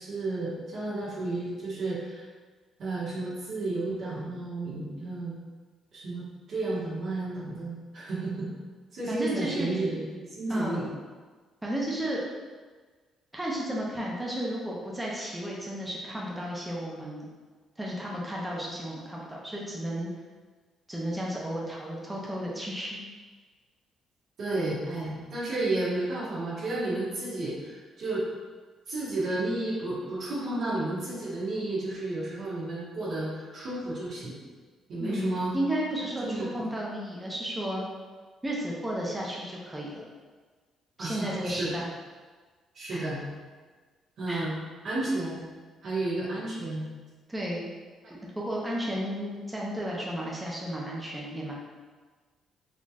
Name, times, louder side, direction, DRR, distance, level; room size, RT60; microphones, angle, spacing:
voice 1, 0.0-2.2 2.8-5.4 5.9-8.5 8.9-10.9 24.4-28.2 28.9-34.4 34.9-35.5 36.2-36.7 41.0-41.7 42.7-43.3 44.2-45.4 45.8-46.8 48.0-48.1, right 2 dB, 60° right, -9 dB, 1.5 m, -32 dB
voice 2, 9.1-9.7 10.5-10.8 11.6-12.2 13.3-17.3 17.8-20.1 20.9-23.0 35.0-37.9 38.4-40.0 41.0-41.9 42.9-43.0 44.3-44.4 47.3-47.7 48.1-51.5, equal, 10° right, -4 dB, 0.7 m, -33 dB
4.2 x 3.0 x 2.5 m, 1.4 s
cardioid pair, 115°, 0 cm